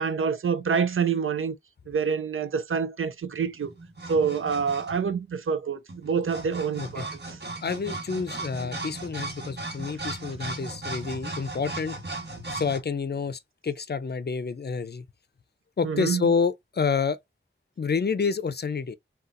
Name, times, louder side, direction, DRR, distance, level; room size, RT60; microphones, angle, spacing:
voice 1, 0.0-1.6 1.9-3.7 4.1-7.4 15.8-16.3, right 6 dB, 80° right, 0.5 m, -27 dB
sound 1, 3.4-5.2 5.9-12.8, right 2 dB, 55° right, 1.3 m, -37 dB
voice 2, 7.6-12.0 12.5-15.0 15.8-17.2 17.8-19.0, left 5 dB, 50° left, 0.5 m, -28 dB
3.9 x 2.3 x 2.5 m
cardioid pair, 40°, 21 cm